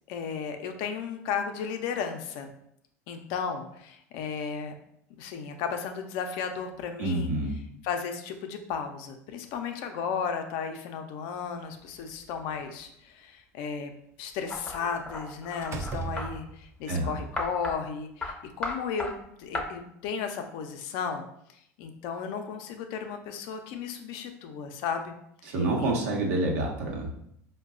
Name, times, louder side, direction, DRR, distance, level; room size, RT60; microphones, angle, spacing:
voice 1, 0.1-2.5 3.1-4.7 5.2-7.3 7.8-13.9 14.2-19.1 19.4-25.1 25.4-25.5 25.8-25.9, left 6 dB, 60° left, 6 dB, 0.5 m, -34 dB
voice 2, 7.0-7.6 16.9-17.1 25.5-27.1, right 2 dB, 75° right, -1 dB, 0.8 m, -27 dB
Slam, 11.8-12.8 14.9-15.2 15.6-16.8, right 4 dB, 30° right, 0.3 m, -38 dB
sound 1, 14.5-16.3 17.4-17.8 18.2-18.3 18.6-19.1 19.5-19.6, left 2 dB, 10° left, 0.6 m, -34 dB
4.5 x 2.2 x 2.4 m, 0.72 s
hypercardioid pair, 85°, 9 cm